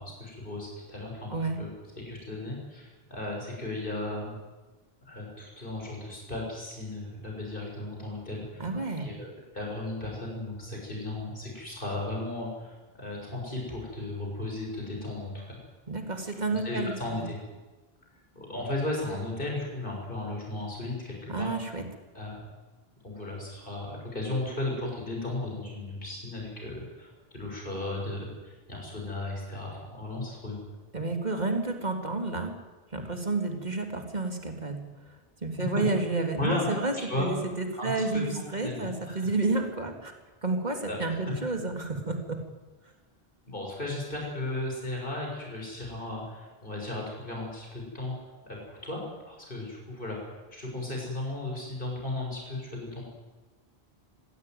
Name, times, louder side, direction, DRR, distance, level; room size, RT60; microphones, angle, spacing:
voice 1, 0.0-1.7 2.0-4.4 5.1-8.6 9.0-9.3 9.5-15.6 16.5-17.4 18.4-21.5 22.1-22.4 23.0-30.6 35.8-35.9 36.4-36.7 37.1-37.3 37.8-39.3 40.9-41.3 43.5-48.2 48.5-49.0 49.3-53.0, left 2 dB, 55° left, -1 dB, 7.1 m, -35 dB
voice 2, 8.6-9.1 15.9-17.2 21.3-21.8 30.9-32.5 32.9-34.8 35.1-35.2 35.4-40.1 40.4-42.4, right 3 dB, 45° right, 4 dB, 3.2 m, -30 dB
26.0 x 16.5 x 9.5 m, 1.2 s
omnidirectional pair, 1.1 m